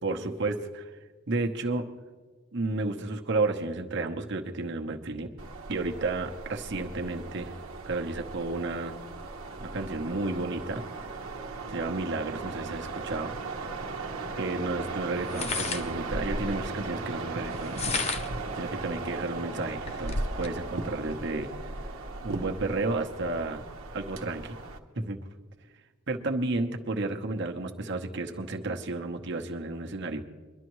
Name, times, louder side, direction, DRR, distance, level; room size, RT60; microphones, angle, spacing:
voice 1, 0.0-0.9 1.3-1.9 2.5-5.4 5.7-7.6 7.8-8.9 9.6-10.8 11.7-13.3 14.4-17.8 18.6-21.5 22.2-23.6 23.9-24.6 25.0-25.2 26.1-30.2, right 2 dB, 60° right, 3 dB, 1.0 m, -32 dB
sound 1, 5.4-24.8, right 3 dB, 90° right, 1.1 m, -38 dB
sound 2, 13.9-14.0 15.2-16.6 17.6-18.4 19.0-19.1 19.5-20.6, left 3 dB, 30° left, 0.6 m, -32 dB
23.0 x 12.0 x 3.1 m, 1.4 s
head